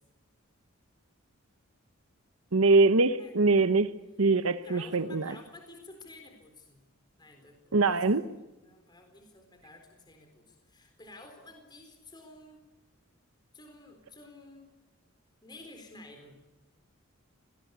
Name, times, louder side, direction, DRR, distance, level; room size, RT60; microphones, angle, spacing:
voice 1, 2.5-3.9 4.2-5.3 7.7-8.2, right 3 dB, 85° right, 11 dB, 1.0 m, -23 dB
voice 2, 4.6-6.8 7.2-8.0 8.2-12.6 13.5-14.7 15.4-16.4, left 2 dB, 20° left, 4 dB, 4.1 m, -52 dB
26.0 x 19.0 x 8.3 m, 1.0 s
head